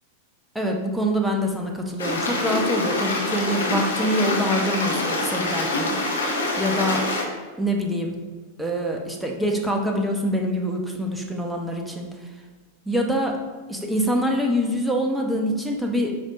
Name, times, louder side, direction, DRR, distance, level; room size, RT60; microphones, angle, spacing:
voice 1, 0.5-6.0 6.6-7.0 7.6-8.1 8.6-12.1 12.9-13.4 13.7-16.2, equal, 5° right, 1 dB, 1.0 m, -25 dB
Stream, 2.0-7.2, left 2 dB, 70° left, 1.4 m, -25 dB
8.9 x 5.3 x 2.6 m, 1.4 s
figure-of-eight pair, 90°, 0 cm